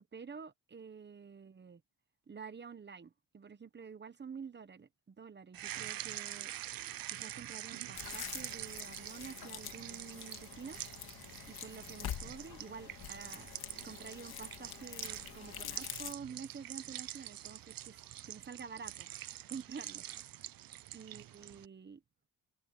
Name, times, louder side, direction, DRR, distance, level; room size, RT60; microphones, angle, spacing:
voice 1, 0.0-1.8 2.3-6.5 7.1-10.8 11.5-13.5 13.8-18.0 18.3-19.1 19.5-20.0 20.9-22.0, right 6 dB, 30° right, 1.1 m, -49 dB
sound 1, 5.5-21.7, right 13 dB, 65° right, 0.8 m, -46 dB
sound 2, 7.9-16.1, left 10 dB, 70° left, 2.2 m, -46 dB
open air
cardioid pair, 140°, 38 cm